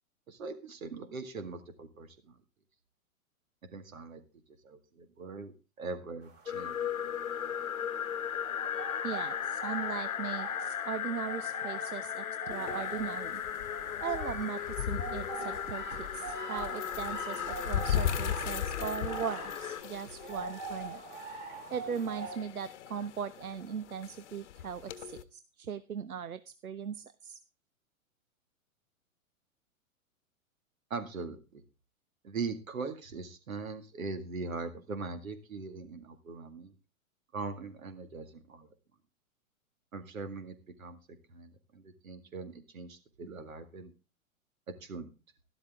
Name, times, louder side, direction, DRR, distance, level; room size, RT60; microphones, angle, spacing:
voice 1, 0.3-2.4 3.7-4.2 4.6-6.8 30.9-31.6 32.2-36.7 37.3-38.7 39.9-41.0 41.3-43.9 44.8-45.1, right 4 dB, 70° right, 10 dB, 2.2 m, -41 dB
sound 1, 6.2-22.4, right 4 dB, 25° right, 2.5 m, -45 dB
sound 2, 6.5-19.8, left 9 dB, 75° left, 1.1 m, -36 dB
voice 2, 9.0-13.4 14.0-21.0 21.7-27.4, right 7 dB, 90° right, 15 dB, 0.7 m, -39 dB
sound 3, 12.5-25.2, left 10 dB, 55° left, 1.1 m, -39 dB
12.0 x 12.0 x 3.6 m, 0.31 s
figure-of-eight pair, 110°, 42 cm